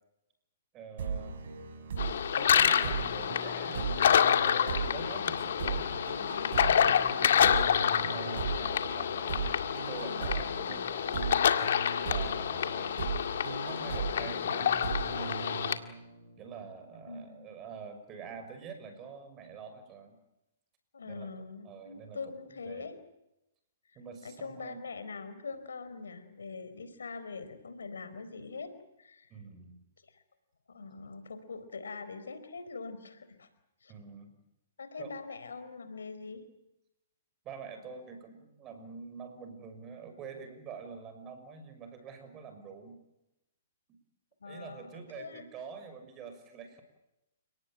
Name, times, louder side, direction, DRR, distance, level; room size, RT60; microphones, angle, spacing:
voice 1, 0.7-1.3 2.5-9.4 9.7-11.4 12.0-13.1 13.6-15.4 16.4-20.2 21.1-21.3 21.6-22.2 22.5-22.9 23.9-24.8 29.3-29.7 33.9-34.4 35.0-35.1 37.4-43.0 43.9-44.0 44.5-46.8, right 5 dB, 25° right, 7 dB, 6.4 m, -46 dB
sound 1, 1.0-16.4, right 5 dB, 65° right, 6.5 m, -38 dB
sound 2, 2.0-15.8, left 8 dB, 70° left, 1.9 m, -28 dB
voice 2, 17.1-17.6 20.9-22.9 24.2-28.7 29.0-29.3 30.1-30.2 30.7-33.5 33.8-33.9 34.8-36.4 44.4-45.4, left 4 dB, 90° left, 11 dB, 4.3 m, -43 dB
30.0 x 18.5 x 9.1 m, 0.90 s
hypercardioid pair, 135°, 0 cm